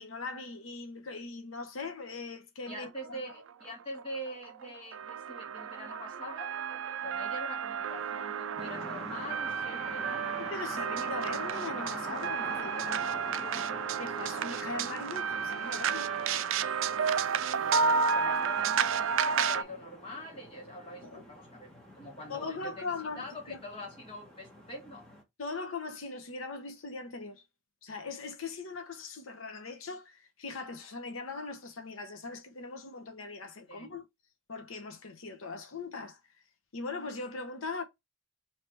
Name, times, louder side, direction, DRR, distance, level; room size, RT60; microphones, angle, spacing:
voice 1, 0.0-2.9 3.2-3.3 10.4-13.1 14.0-16.1 21.0-21.2 22.3-23.6 25.4-27.4 27.8-34.0 34.5-36.2 36.7-37.8, left 3 dB, 85° left, 0.8 m, -40 dB
voice 2, 2.7-6.5 7.0-10.3 17.6-25.0 33.7-33.9, left 1 dB, 25° left, 1.7 m, -44 dB
sound 1, 3.0-3.1 3.5-3.7 4.0-19.6, right 6 dB, 75° right, 0.4 m, -32 dB
sound 2, 8.6-25.2, equal, 5° left, 1.2 m, -45 dB
3.2 x 2.9 x 4.5 m
head